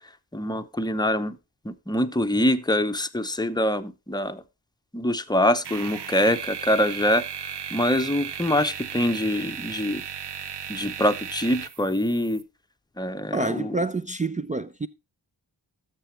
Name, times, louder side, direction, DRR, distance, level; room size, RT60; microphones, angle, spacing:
voice 1, 0.3-1.4 1.6-4.4 4.9-10.0 10.7-12.4 13.0-13.8, left 1 dB, 10° left, 0.7 m, -24 dB
sound 1, 5.6-12.4, right 8 dB, 60° right, 0.8 m, -36 dB
voice 2, 13.3-14.9, right 2 dB, 20° right, 0.4 m, -28 dB
12.0 x 6.8 x 3.3 m
cardioid pair, 50°, 46 cm